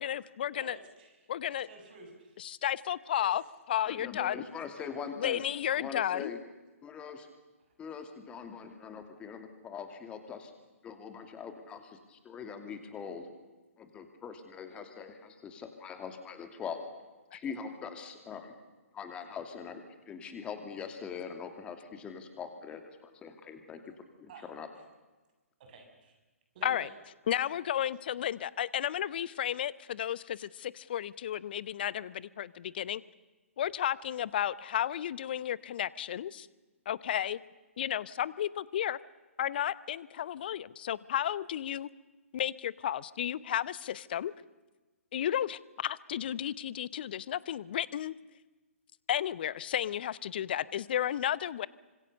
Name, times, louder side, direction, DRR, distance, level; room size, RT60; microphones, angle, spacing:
voice 1, 0.0-0.8 1.3-1.7 2.4-3.4 3.7-4.4 5.2-6.3 26.6-26.9 27.3-33.0 33.6-36.5 36.9-37.4 37.8-39.0 39.4-41.9 42.3-44.3 45.1-48.1 49.1-51.7, left 10 dB, 40° left, 20 dB, 0.9 m, -33 dB
voice 2, 0.6-1.2 1.6-2.4 3.1-3.3 4.7-4.8 24.3-24.5 25.7-26.2 26.5-26.9, right 3 dB, 40° right, 4 dB, 7.5 m, -50 dB
voice 3, 3.8-5.4 5.7-6.4 6.8-7.2 7.8-10.5 10.8-13.3 13.8-16.8 17.3-18.5 18.9-23.8 24.2-24.7, left 6 dB, 15° left, 7 dB, 2.7 m, -42 dB
27.5 x 26.0 x 6.8 m, 1.2 s
figure-of-eight pair, 125°, 8 cm